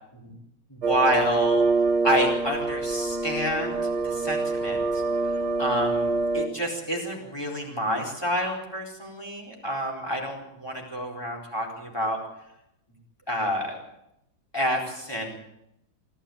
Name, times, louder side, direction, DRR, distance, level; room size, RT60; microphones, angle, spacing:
voice 1, 0.7-1.6 2.0-4.9 5.6-12.2 13.3-13.8 14.5-15.4, equal, 10° left, 0 dB, 4.4 m, -28 dB
sound 1, 0.8-6.5, right 3 dB, 55° right, 2.5 m, -25 dB
24.0 x 13.5 x 8.8 m, 0.85 s
omnidirectional pair, 2.2 m